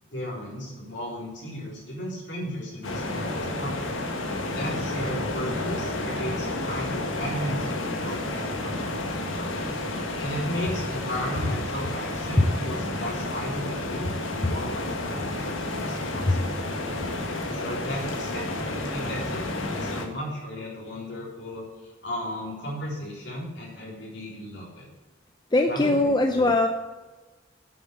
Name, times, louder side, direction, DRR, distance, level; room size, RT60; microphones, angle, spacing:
voice 1, 0.1-3.8 4.5-9.6 10.2-16.7 17.5-18.5 18.7-24.9 25.7-26.5, equal, 65° left, -4 dB, 3.8 m, -35 dB
sound 1, 2.8-20.1, left 2 dB, 90° left, 1.6 m, -31 dB
voice 2, 25.5-26.7, left 2 dB, 20° left, 4 dB, 0.6 m, -21 dB
8.7 x 7.7 x 6.7 m, 1.2 s
head